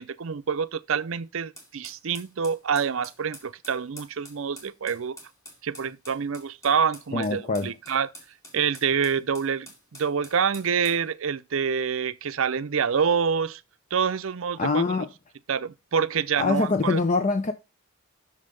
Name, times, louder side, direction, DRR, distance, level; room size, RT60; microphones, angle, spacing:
voice 1, 0.0-5.2 5.6-8.1 8.5-9.7 10.0-13.6 13.9-14.8 15.5-17.0, right 6 dB, 65° right, 0.5 m, -26 dB
sound 1, 1.6-11.0, equal, 15° left, 2.3 m, -48 dB
voice 2, 7.1-7.8 14.6-15.1 16.4-17.5, left 3 dB, 35° left, 0.6 m, -24 dB
6.6 x 5.5 x 5.1 m
head